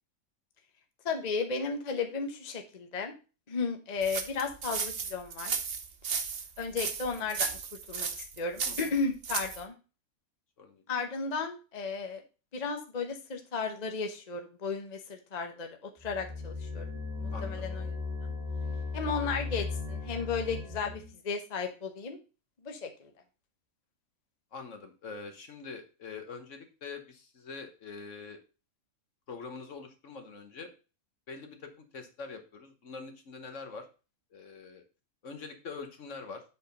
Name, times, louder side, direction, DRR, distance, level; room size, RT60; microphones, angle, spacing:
voice 1, 1.0-3.1 3.5-5.5 6.6-7.6 7.9-9.7 10.9-12.2 12.5-16.9 17.2-18.0 18.2-18.3 18.9-22.2 22.6-23.1, left 4 dB, 35° left, 4 dB, 1.0 m, -34 dB
sound 1, 4.0-9.6, right 6 dB, 50° right, 1.0 m, -35 dB
voice 2, 8.6-9.0 10.6-10.8 17.3-17.7 24.5-28.4 29.3-30.7 31.3-33.9 34.3-34.8 35.2-36.4, left 4 dB, 60° left, 6 dB, 1.4 m, -44 dB
sound 2, 16.0-21.1, left 3 dB, ahead, 1.7 m, -36 dB
7.7 x 4.4 x 5.2 m, 0.33 s
omnidirectional pair, 1.5 m